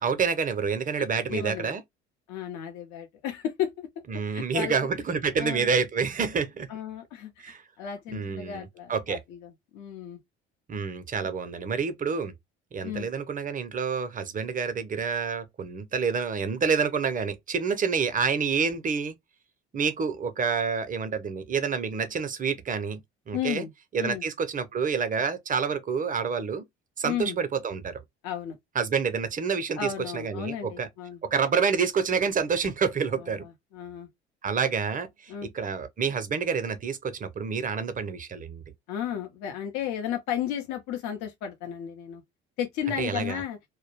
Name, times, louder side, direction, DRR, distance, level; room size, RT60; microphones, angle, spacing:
voice 1, 0.0-1.8 4.1-6.7 7.4-7.6 8.1-9.2 10.7-12.3 12.7-19.1 19.7-23.7 23.9-26.6 27.0-28.0 28.7-30.9 31.2-33.5 34.4-38.6 43.0-43.4, right 6 dB, 25° right, 0.5 m, -28 dB
voice 2, 1.2-1.8 2.3-3.9 4.2-4.8 5.4-5.7 6.7-10.2 11.2-11.3 12.8-13.1 23.3-23.7 24.0-24.2 27.0-27.4 28.2-28.6 29.8-31.2 33.2-34.1 35.3-35.5 38.9-42.2 42.6-43.6, left 9 dB, 60° left, 0.6 m, -34 dB
2.2 x 2.1 x 2.8 m
hypercardioid pair, 60°, 33 cm